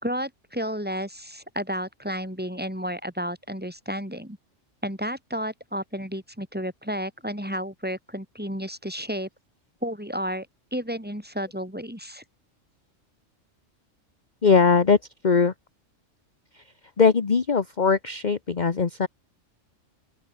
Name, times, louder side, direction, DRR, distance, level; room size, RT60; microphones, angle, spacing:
voice 1, 0.0-4.4 4.8-9.3 9.8-10.5 10.7-12.2, equal, 5° right, 4.9 m, -32 dB
voice 2, 14.4-15.0 15.2-15.5 16.5-16.6 17.0-19.1, left 5 dB, 35° left, 1.2 m, -20 dB
open air
omnidirectional pair, 1.3 m